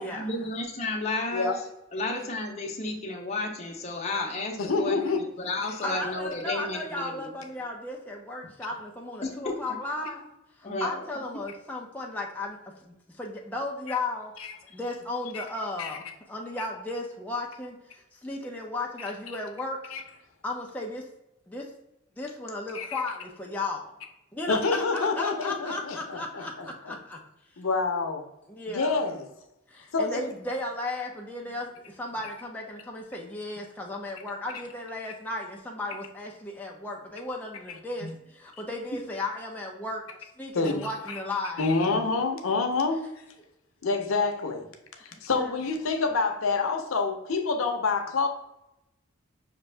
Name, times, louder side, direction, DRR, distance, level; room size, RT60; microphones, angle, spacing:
voice 1, 0.0-1.6 1.9-7.3 9.2-9.6 10.6-11.0, left 2 dB, 30° left, 0 dB, 0.9 m, -32 dB
voice 2, 4.6-5.2 13.9-14.0 14.4-14.5 15.3-15.4 15.8-16.0 19.9-20.0 22.7-23.0 24.5-26.7 27.6-28.3 28.7-29.2 29.9-30.2 38.0-38.1 40.5-41.2 41.6-43.0 43.8-44.7 45.2-48.3, left 4 dB, 80° left, 4 dB, 0.7 m, -27 dB
voice 3, 5.8-10.3 10.6-12.6 12.8-14.3 14.7-19.9 20.4-21.1 21.5-21.7 22.2-23.9 24.3-27.2 28.5-29.1 29.7-41.7 45.4-45.5, left 2 dB, 10° left, -1 dB, 0.5 m, -35 dB
5.8 x 2.6 x 3.2 m, 0.88 s
head